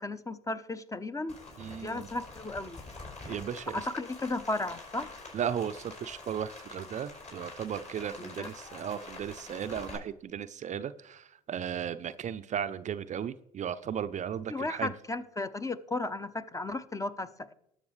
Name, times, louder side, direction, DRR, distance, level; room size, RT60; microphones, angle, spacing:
voice 1, 0.0-1.4 1.8-2.8 3.7-5.1 8.2-8.5 14.5-17.5, left 2 dB, 15° left, 13 dB, 0.8 m, -35 dB
Rain, 1.3-10.0, left 3 dB, 40° left, 4.9 m, -46 dB
voice 2, 1.6-2.1 3.3-3.8 5.3-14.9, right 8 dB, 40° right, 12 dB, 0.5 m, -36 dB
19.0 x 7.1 x 3.2 m, 0.76 s
hypercardioid pair, 60°, 19 cm